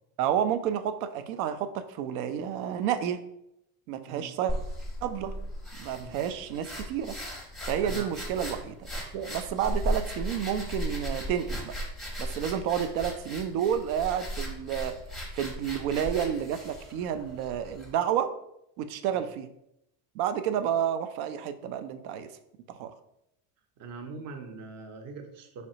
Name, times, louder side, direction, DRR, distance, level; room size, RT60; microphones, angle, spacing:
voice 1, 0.2-3.2 3.9-4.5 5.0-5.4 5.8-7.2 7.7-11.8 12.2-15.0 15.3-18.3 18.8-19.5 20.2-22.3 22.7-22.9, right 9 dB, 90° right, 10 dB, 0.5 m, -30 dB
sound 1, 4.5-17.9, equal, ahead, 0.6 m, -36 dB
voice 2, 23.8-25.7, right 4 dB, 40° right, 6 dB, 0.6 m, -42 dB
3.9 x 3.2 x 2.7 m, 0.80 s
cardioid pair, 140°, 42 cm